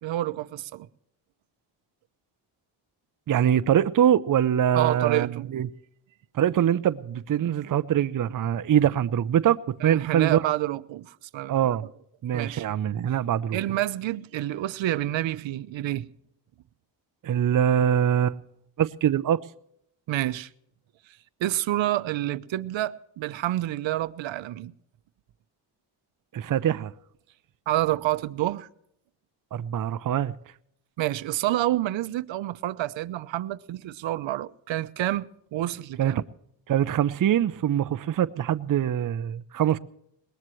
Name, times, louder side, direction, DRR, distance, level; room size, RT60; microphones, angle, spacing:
voice 1, 0.0-0.9 4.7-5.5 9.8-11.8 12.3-12.7 13.5-16.1 20.1-20.5 21.4-24.7 27.7-28.7 31.0-36.2, right 14 dB, 70° right, 0.9 m, -28 dB
voice 2, 3.3-5.7 6.3-9.6 9.8-10.4 11.5-11.9 12.2-13.6 17.2-18.4 18.8-19.4 26.3-26.9 29.5-30.3 36.0-36.1 36.7-39.8, right 10 dB, 45° right, 0.7 m, -23 dB
21.5 x 19.5 x 3.2 m
cardioid pair, 95°, 46 cm